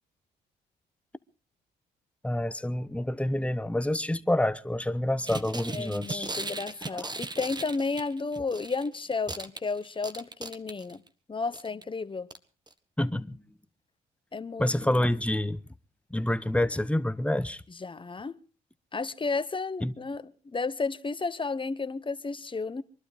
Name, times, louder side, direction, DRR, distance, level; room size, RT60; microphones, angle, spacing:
voice 1, 2.2-6.3 6.9-7.2 13.0-13.4 14.6-15.6 16.1-17.6 19.8-19.9, left 1 dB, 5° left, 1.1 m, -28 dB
sound 1, 5.3-8.9 9.1-11.1 11.5-11.8 12.3-12.4 12.7-12.8, right 2 dB, 25° right, 1.5 m, -37 dB
voice 2, 5.7-11.0 11.3-12.3 14.3-14.7 17.8-18.4 18.9-22.8, left 4 dB, 25° left, 1.2 m, -32 dB
23.5 x 12.0 x 5.0 m
supercardioid pair, 55°, 19 cm